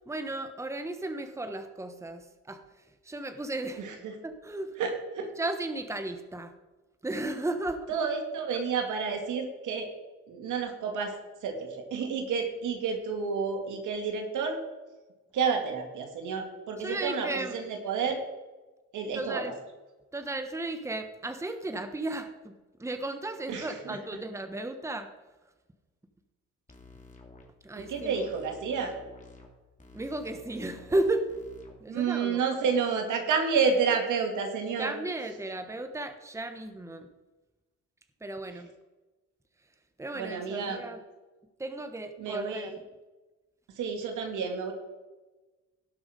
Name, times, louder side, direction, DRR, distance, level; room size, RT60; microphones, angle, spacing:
voice 1, 0.1-2.6 3.0-3.9 4.2-4.8 5.4-6.5 7.0-7.9 16.8-17.5 19.1-19.5 20.1-22.5 22.8-25.1 27.6-28.3 29.9-31.3 31.8-32.4 34.8-37.1 38.2-38.7 40.0-41.0 41.6-42.8, right 2 dB, 10° right, 8 dB, 1.1 m, -34 dB
voice 2, 3.8-4.1 4.8-5.3 7.9-9.9 10.3-11.1 11.4-14.6 15.3-18.2 18.9-19.4 23.5-24.0 27.8-28.9 31.9-34.9 40.1-40.8 42.2-42.7 43.8-44.7, right 5 dB, 80° right, 4 dB, 2.2 m, -30 dB
sound 1, 26.7-27.4 27.8-29.5 29.8-31.8, left 2 dB, 25° left, 2.6 m, -51 dB
17.0 x 6.1 x 5.0 m, 1.2 s
cardioid pair, 90°, 30 cm